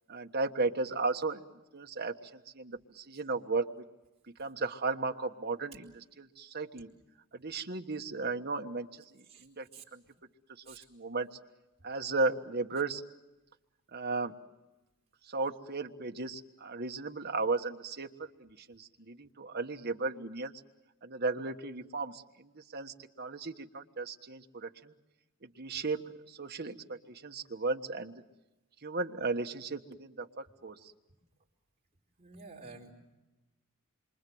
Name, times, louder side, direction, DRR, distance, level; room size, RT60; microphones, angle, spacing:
voice 1, 0.1-1.4 1.7-2.3 2.5-3.7 4.4-5.9 6.2-6.9 7.3-10.0 10.7-11.4 11.8-13.0 13.9-14.4 15.3-20.5 21.0-24.9 25.4-26.0 26.3-28.2 28.8-30.9, right 3 dB, 50° right, 4 dB, 1.4 m, -35 dB
voice 2, 9.3-9.9 10.7-10.8 32.2-32.9, right 4 dB, 30° right, 0 dB, 4.5 m, -51 dB
27.5 x 24.5 x 7.9 m, 1.0 s
head